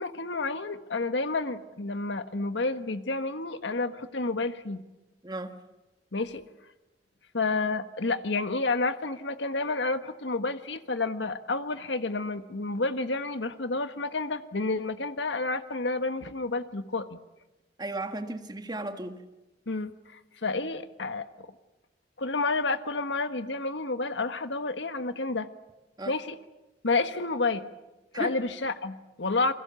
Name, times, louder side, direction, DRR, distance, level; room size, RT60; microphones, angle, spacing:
voice 1, 0.0-4.8 6.1-6.4 7.3-17.2 19.7-21.5 22.2-25.5 26.1-26.4 26.8-27.7 28.1-29.5, left 3 dB, 85° left, 1.4 m, -30 dB
voice 2, 5.2-5.6 17.8-19.2 26.0-26.2 28.1-28.4, right 2 dB, 25° right, 1.6 m, -35 dB
28.5 x 22.5 x 7.0 m
head